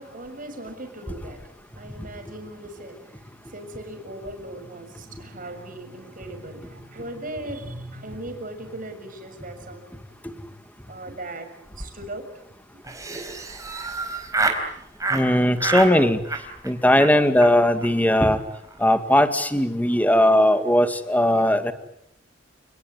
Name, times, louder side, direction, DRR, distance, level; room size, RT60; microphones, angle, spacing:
voice 1, 0.0-10.0 10.9-12.5, right 1 dB, 45° right, 6 dB, 6.6 m, -38 dB
Laughter, 12.8-14.6 15.0-15.3 15.6-15.9 16.2-16.7 17.0-17.1 17.4-17.5 17.8-17.9 18.1-18.3 18.5-18.9, right 3 dB, 20° right, 4.4 m, -27 dB
voice 2, 15.1-16.2 16.6-18.4 18.8-21.7, left 1 dB, 10° left, 9 dB, 2.2 m, -18 dB
30.0 x 20.0 x 9.4 m, 0.76 s
head